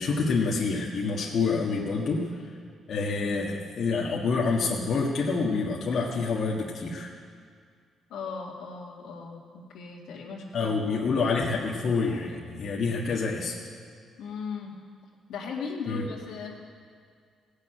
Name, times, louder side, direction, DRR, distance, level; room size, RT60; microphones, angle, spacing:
voice 1, 0.0-2.3 2.9-7.1 10.5-13.6 15.9-16.0, left 4 dB, 60° left, -3 dB, 1.5 m, -27 dB
voice 2, 8.1-11.4 14.2-14.8 15.3-16.6, left 5 dB, 85° left, -2 dB, 2.1 m, -38 dB
16.5 x 6.6 x 8.9 m, 2.1 s
cardioid pair, 90°, 0 cm